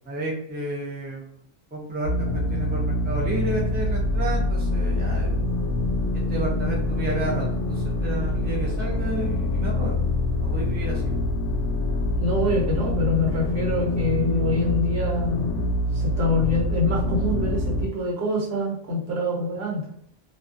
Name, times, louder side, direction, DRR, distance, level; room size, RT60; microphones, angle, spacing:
voice 1, 0.1-1.4 1.7-5.4 6.1-10.0 10.4-11.2, right 2 dB, 15° right, -2 dB, 0.4 m, -31 dB
sound 1, 2.0-17.9, left 1 dB, 60° left, 0.7 m, -25 dB
voice 2, 12.2-15.6 15.9-19.8, left 2 dB, 70° right, -3 dB, 1.2 m, -25 dB
2.3 x 2.2 x 2.5 m, 0.65 s
omnidirectional pair, 1.1 m